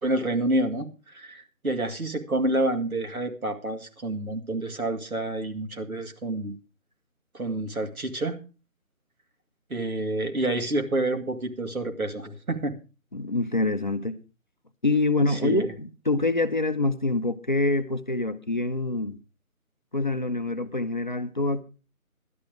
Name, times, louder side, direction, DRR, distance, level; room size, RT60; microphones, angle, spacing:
voice 1, 0.0-6.6 7.3-8.4 9.7-12.8 15.3-15.7, right 2 dB, 85° right, 2.2 m, -28 dB
voice 2, 13.1-14.2 14.8-19.2 19.9-21.6, left 2 dB, 35° left, 0.6 m, -25 dB
12.0 x 10.5 x 4.9 m
figure-of-eight pair, 160°, 42 cm